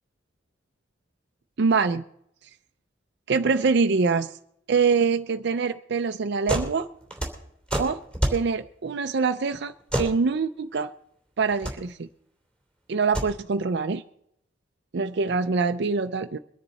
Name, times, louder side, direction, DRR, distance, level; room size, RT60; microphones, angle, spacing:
voice 1, 1.6-2.0 3.3-4.3 4.7-6.9 7.8-8.0 8.3-10.9 11.4-12.1 12.9-14.0 14.9-16.4, right 4 dB, 60° right, 0.5 m, -24 dB
sound 1, 6.5-6.7 7.0-8.4 9.9-10.1 11.4-11.7 13.0-13.3, right 1 dB, 5° left, 2.9 m, -27 dB
22.0 x 9.9 x 4.1 m
head